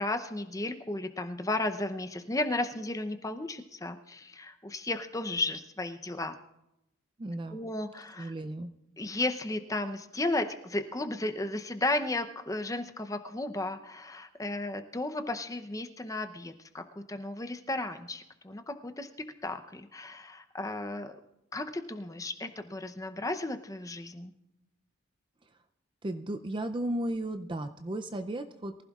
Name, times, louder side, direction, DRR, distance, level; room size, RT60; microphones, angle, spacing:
voice 1, 0.0-6.3 7.5-8.3 9.0-21.2 21.5-24.3, left 2 dB, 15° left, 7 dB, 0.6 m, -34 dB
voice 2, 7.2-7.6 8.2-8.7 26.0-28.8, right 1 dB, 25° right, 8 dB, 0.4 m, -34 dB
23.0 x 15.0 x 2.4 m, 0.87 s
head